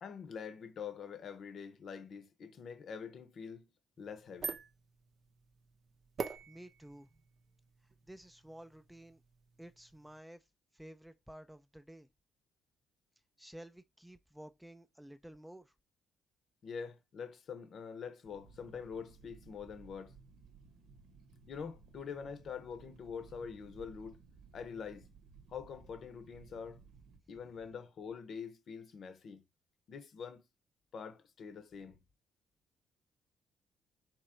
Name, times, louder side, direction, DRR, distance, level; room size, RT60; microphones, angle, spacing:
voice 1, 0.0-3.7 4.0-4.6 16.6-20.1 21.5-24.2 24.5-25.1 25.5-26.8 27.3-29.4 29.9-30.4 30.9-32.0, left 6 dB, 60° left, 0.8 m, -45 dB
sound 1, 4.0-10.2, right 5 dB, 50° right, 0.6 m, -47 dB
voice 2, 6.5-7.1 8.0-9.2 9.6-10.5 10.7-12.1 13.4-15.7, right 1 dB, 5° right, 0.5 m, -52 dB
sound 2, 18.2-27.2, right 5 dB, 85° right, 1.0 m, -58 dB
3.7 x 3.0 x 4.4 m
cardioid pair, 90°, 0 cm